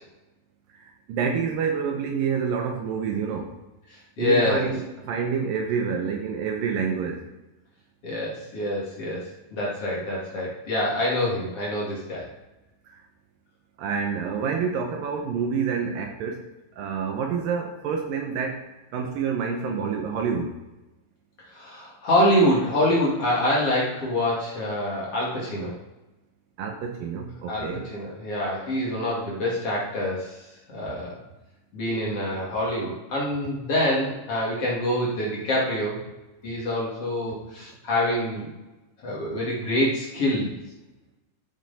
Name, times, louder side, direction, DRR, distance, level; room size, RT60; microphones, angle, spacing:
voice 1, 0.8-3.5 4.2-7.3 12.9-13.0 13.8-16.4 16.8-18.6 18.9-20.5 26.6-27.9, right 6 dB, 75° right, 3 dB, 2.3 m, -28 dB
voice 2, 4.2-4.6 8.0-9.2 9.5-12.3 21.5-25.7 27.5-30.4 30.7-31.2 31.7-36.0 36.4-38.5 39.0-40.5, left 1 dB, 45° left, -5 dB, 2.8 m, -25 dB
13.0 x 6.8 x 4.1 m, 1.0 s
omnidirectional pair, 4.5 m